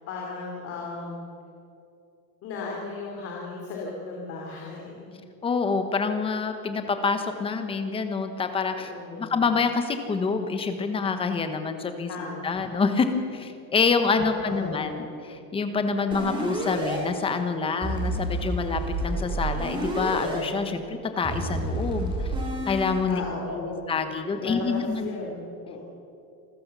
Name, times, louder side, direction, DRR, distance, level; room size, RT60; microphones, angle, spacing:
voice 1, 0.1-1.2 2.4-5.2 8.7-9.4 12.1-12.5 14.4-15.2 23.1-24.0 24.4-25.8, left 3 dB, 30° left, -1 dB, 3.0 m, -35 dB
voice 2, 5.4-12.1 12.4-13.1 13.3-22.3 22.7-23.2 23.5-25.1, left 5 dB, 10° left, 7 dB, 1.1 m, -27 dB
sound 1, 16.1-17.0 17.8-20.4 21.2-22.9, right 1 dB, 10° right, 3.9 m, -29 dB
27.5 x 14.5 x 7.0 m, 2.6 s
cardioid pair, 180°, 44 cm